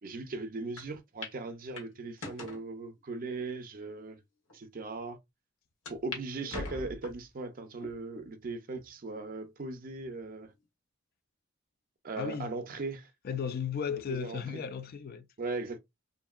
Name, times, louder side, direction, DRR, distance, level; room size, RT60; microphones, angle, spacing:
voice 1, 0.0-4.2 4.5-5.2 5.9-10.5 12.0-13.1 14.1-14.6 15.4-15.8, right 3 dB, 45° right, 0.5 m, -38 dB
sound 1, 0.8-0.9 1.2-1.4 1.8-2.6 3.3-3.4 4.1-4.2 4.5-4.6 5.9-6.2 6.5-7.3 7.8-8.3 8.8-8.9 10.0-10.5, left 2 dB, 70° left, 1.0 m, -42 dB
voice 2, 6.4-6.7 12.1-12.5 13.2-15.3, left 7 dB, 50° left, 0.4 m, -35 dB
2.8 x 2.6 x 2.3 m
head